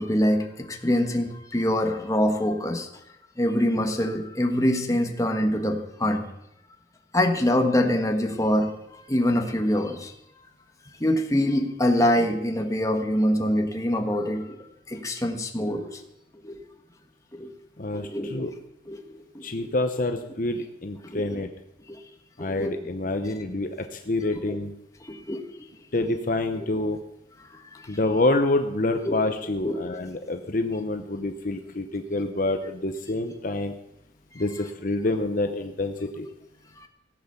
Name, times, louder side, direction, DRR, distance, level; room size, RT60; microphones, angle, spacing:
voice 1, 0.0-2.9 3.4-6.2 7.1-10.1 11.0-14.6 14.9-16.0 16.4-16.6 17.3-17.5 17.9-18.5 18.8-19.7 21.0-21.4 21.9-22.0 22.4-22.8 23.2-23.3 24.3-24.6 25.0-25.4 27.7-27.9 29.0-29.2 29.6-29.8 36.2-36.3 36.8-36.9, left 1 dB, 20° left, 4 dB, 1.4 m, -25 dB
voice 2, 17.8-18.5 19.4-21.5 22.4-23.7 24.1-24.7 25.9-27.0 27.9-33.7 34.4-36.3, left 2 dB, 50° left, 6 dB, 0.9 m, -27 dB
17.0 x 8.3 x 6.9 m, 0.87 s
head